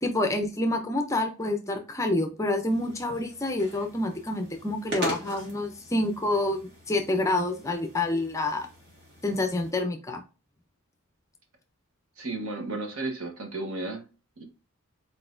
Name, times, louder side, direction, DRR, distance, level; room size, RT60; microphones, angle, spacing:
voice 1, 0.0-8.7 9.2-10.2, left 2 dB, 15° left, 0.5 m, -28 dB
sound 1, 2.7-9.7, right 1 dB, 50° right, 1.9 m, -41 dB
voice 2, 12.2-14.0 14.4-14.5, right 2 dB, 70° right, 1.2 m, -33 dB
4.2 x 4.0 x 2.6 m
head